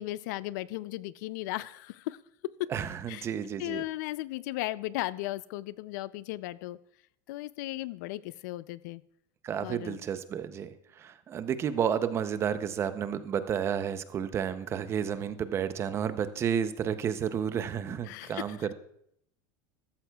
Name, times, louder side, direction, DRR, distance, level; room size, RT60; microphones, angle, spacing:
voice 1, 0.0-2.2 3.1-3.3 3.6-6.8 7.3-9.0 9.6-10.0 18.1-18.7, left 17 dB, 70° left, 18 dB, 0.4 m, -36 dB
voice 2, 2.7-3.8 9.4-18.7, right 8 dB, 25° right, 12 dB, 0.6 m, -31 dB
14.0 x 13.0 x 2.3 m, 0.72 s
supercardioid pair, 145°, 10 cm